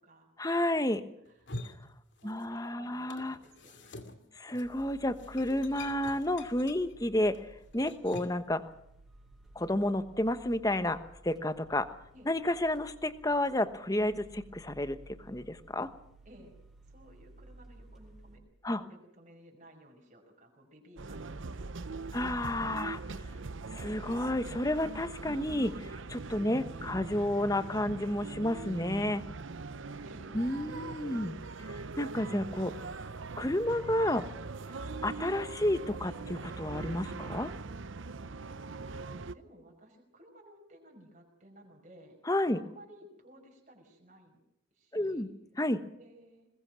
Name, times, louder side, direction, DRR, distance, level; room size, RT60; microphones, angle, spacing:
voice 1, 0.4-1.0 2.2-3.4 4.4-7.5 7.7-8.6 9.5-11.9 12.3-15.0 15.3-15.9 18.6-18.8 22.1-23.2 23.7-29.2 30.3-31.4 32.0-32.7 33.4-34.3 35.0-37.5 42.3-42.6 44.9-45.3 45.6-45.8, left 1 dB, 20° left, 10 dB, 1.1 m, -31 dB
sound 1, 1.3-2.7 2.9-8.5, left 2 dB, 65° left, 2.5 m, -47 dB
voice 2, 2.2-4.3 12.1-12.3 16.3-16.6 16.9-22.4 26.8-27.0 30.0-30.6 38.8-42.2 42.5-44.4 44.7-45.3 46.0-46.5, equal, 40° right, 1 dB, 5.3 m, -56 dB
sound 2, 4.6-18.4, right 1 dB, 5° right, 6.0 m, -56 dB
sound 3, 21.0-39.3, right 3 dB, 75° right, 0.7 m, -41 dB
21.5 x 21.0 x 6.2 m, 0.78 s
head